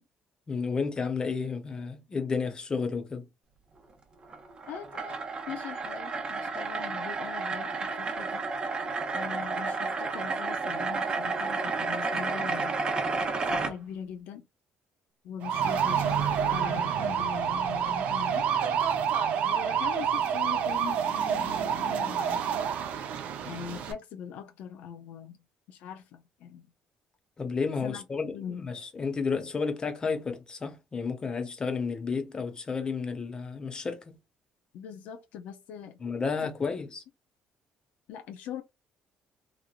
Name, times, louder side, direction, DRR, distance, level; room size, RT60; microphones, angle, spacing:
voice 1, 0.5-3.2 27.4-34.2 36.0-37.0, left 5 dB, 30° left, 0.9 m, -32 dB
sound 1, 4.2-13.7, right 4 dB, 35° right, 0.9 m, -31 dB
voice 2, 4.7-8.4 9.1-12.8 13.4-14.5 15.2-18.5 19.4-22.5 23.4-25.4 25.7-26.6 27.8-28.0 28.3-28.7 34.7-36.0 38.1-38.6, left 8 dB, 75° left, 0.5 m, -41 dB
sound 2, 15.4-23.9, right 8 dB, 70° right, 0.6 m, -28 dB
3.0 x 2.5 x 2.4 m
supercardioid pair, 85°, 3 cm